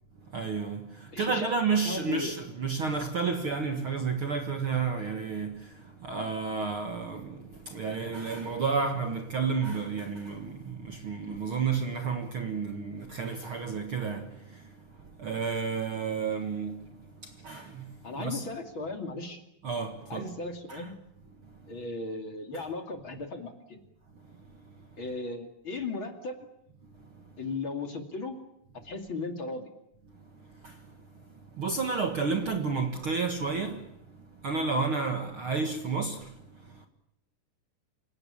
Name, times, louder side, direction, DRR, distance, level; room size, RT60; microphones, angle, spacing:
voice 1, 0.2-18.5 19.6-20.3 20.7-20.9 21.4-21.7 24.2-25.0 26.8-27.3 30.1-36.9, right 5 dB, 50° right, 1.9 m, -32 dB
voice 2, 1.1-1.5 1.8-2.3 18.0-19.4 20.1-20.9 21.7-23.8 25.0-26.5 27.4-28.4 28.8-29.6, left 3 dB, 40° left, 2.9 m, -36 dB
28.0 x 18.0 x 9.9 m
omnidirectional pair, 4.0 m